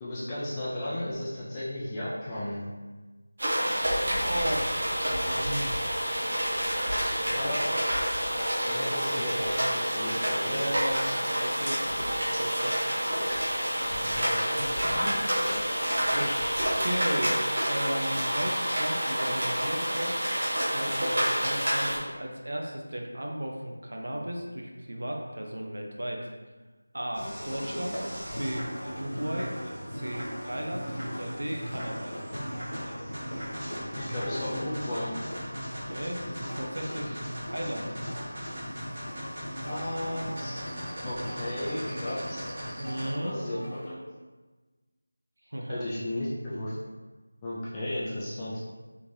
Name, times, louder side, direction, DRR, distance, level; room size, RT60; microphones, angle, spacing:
voice 1, 0.0-2.7 6.8-7.7 8.3-10.7 14.1-15.1 15.4-15.6 16.1-16.6 34.0-35.1 39.6-40.6 41.0-42.5 43.2-43.6 43.8-43.9 45.7-46.8 47.4-48.6, left 1 dB, 10° left, -9 dB, 0.3 m, -35 dB
sound 1, 3.4-22.0, equal, 45° right, 1.0 m, -28 dB
voice 2, 4.1-5.7 7.2-7.5 10.4-12.7 14.6-14.7 16.1-16.3 16.6-20.2 20.6-26.3 26.9-28.0 28.4-29.5 29.9-32.1 35.8-37.8 42.8-43.3 45.5-45.8, right 1 dB, 65° right, 0 dB, 0.5 m, -35 dB
sound 2, 27.1-43.1, equal, 25° right, 1.1 m, -40 dB
sound 3, 27.4-43.9, equal, 75° left, 0.8 m, -40 dB
3.5 x 3.1 x 2.7 m, 1.3 s
figure-of-eight pair, 175°, 0 cm